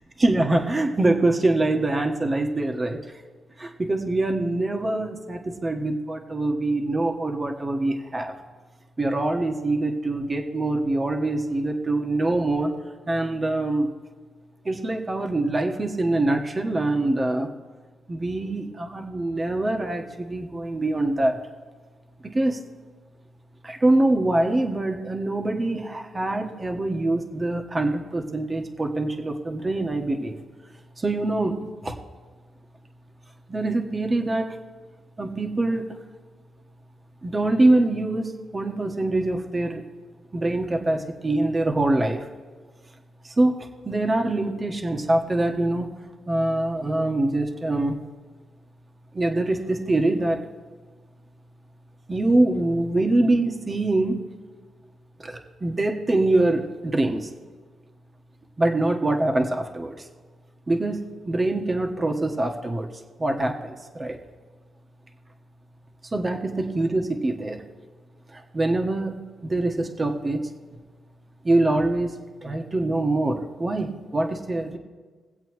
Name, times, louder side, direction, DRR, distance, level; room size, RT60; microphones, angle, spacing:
voice 1, 0.2-3.0 3.6-8.3 9.0-12.7 13.1-13.9 14.6-17.5 18.1-21.4 22.2-22.6 23.6-30.4 31.0-31.9 33.5-34.5 35.2-35.9 37.2-39.8 40.3-42.3 43.2-45.9 46.3-47.9 49.1-50.4 52.1-54.2 55.2-57.3 58.6-59.9 60.7-61.0 61.3-62.9 63.2-64.2 66.1-67.6 68.3-70.5 71.4-72.1 72.4-74.8, right 2 dB, 30° right, 3 dB, 1.3 m, -24 dB
22.0 x 8.0 x 3.2 m, 1.5 s
cardioid pair, 80°, 0 cm